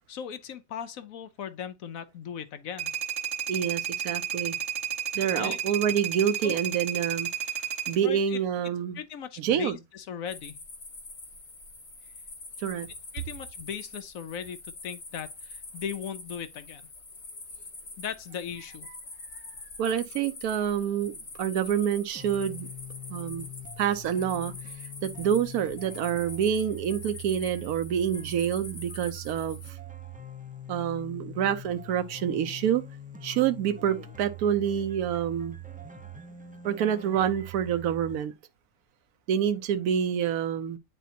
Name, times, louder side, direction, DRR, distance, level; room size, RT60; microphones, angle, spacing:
voice 1, 0.1-3.0 5.3-5.6 6.4-6.6 7.6-7.7 8.0-8.4 8.9-10.6 13.1-14.6 14.8-16.9 18.0-18.9, left 8 dB, 70° left, 1.1 m, -38 dB
sound 1, 2.8-8.0, right 9 dB, 55° right, 1.6 m, -32 dB
voice 2, 3.5-4.6 5.1-7.3 7.9-9.0 9.4-9.8 12.6-12.9 19.8-22.7 23.1-23.5 23.8-24.5 25.0-29.8 30.7-32.8 33.2-35.6 36.6-38.3 39.3-40.8, right 9 dB, 85° right, 1.1 m, -27 dB
sound 2, 10.3-29.7, left 3 dB, 45° left, 1.8 m, -45 dB
sound 3, 22.1-38.2, right 1 dB, 10° right, 0.5 m, -43 dB
9.1 x 4.2 x 2.7 m
omnidirectional pair, 1.5 m